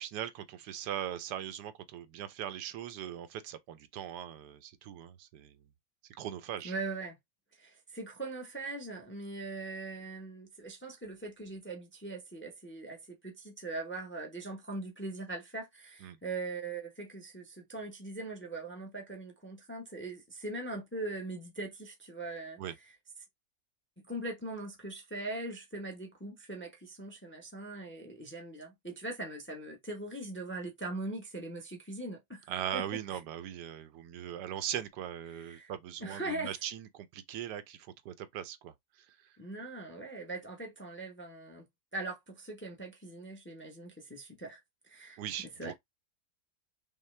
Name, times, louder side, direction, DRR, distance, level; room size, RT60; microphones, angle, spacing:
voice 1, 0.0-5.6 6.1-6.7 16.0-16.2 22.6-22.7 32.5-39.1 45.2-45.8, right 10 dB, 85° right, 1.2 m, -40 dB
voice 2, 6.6-7.2 7.6-22.6 24.1-32.8 35.3-35.7 36.0-36.6 39.4-41.6 41.9-44.6 44.9-45.2 45.6-45.8, right 2 dB, 10° left, 0.6 m, -41 dB
5.5 x 2.2 x 3.2 m
omnidirectional pair, 1.8 m